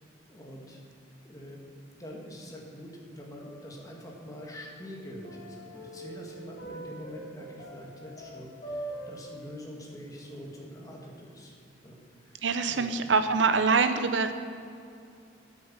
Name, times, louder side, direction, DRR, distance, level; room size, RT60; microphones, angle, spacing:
voice 1, 0.3-0.8 1.2-1.6 2.0-11.6 11.8-12.4 12.7-12.9, equal, 20° left, -1 dB, 1.9 m, -45 dB
sound 1, 3.4-4.4 4.8-9.3, right 1 dB, 40° left, 3.5 m, -43 dB
voice 2, 12.4-14.3, right 4 dB, 70° right, 9 dB, 0.7 m, -24 dB
9.6 x 8.5 x 7.4 m, 2.5 s
head